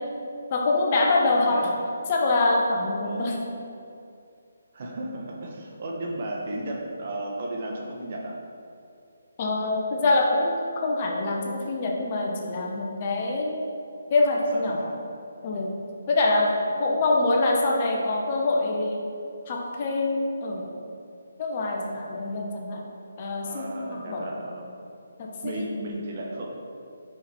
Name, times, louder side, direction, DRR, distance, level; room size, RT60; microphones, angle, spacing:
voice 1, 0.5-1.7 2.1-3.4 9.4-13.7 14.1-14.9 15.4-15.7 16.1-19.0 19.5-20.8 21.4-22.8 23.2-24.3 25.2-25.6, left 2 dB, 35° left, -1 dB, 0.9 m, -25 dB
voice 2, 1.3-1.8 3.0-3.5 4.7-8.4 14.5-14.9 16.4-16.8 23.5-24.7 25.4-26.5, right 1 dB, 45° right, -1 dB, 1.0 m, -34 dB
5.1 x 4.8 x 4.2 m, 2.5 s
figure-of-eight pair, 150°, 0 cm